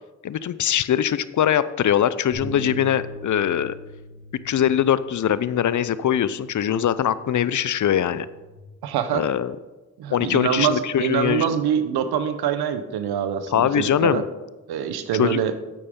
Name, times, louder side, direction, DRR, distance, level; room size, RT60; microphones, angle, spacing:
voice 1, 0.2-3.7 4.4-8.3 9.1-9.5 10.1-11.5 13.5-14.2 15.1-15.4, left 10 dB, 55° left, 16 dB, 0.5 m, -22 dB
sound 1, 2.3-8.6, equal, 85° left, 2.2 m, -41 dB
voice 2, 8.8-9.3 10.0-14.2 14.7-15.5, right 8 dB, 80° right, 10 dB, 0.8 m, -24 dB
8.9 x 8.6 x 3.7 m, 1.2 s
supercardioid pair, 45°, 37 cm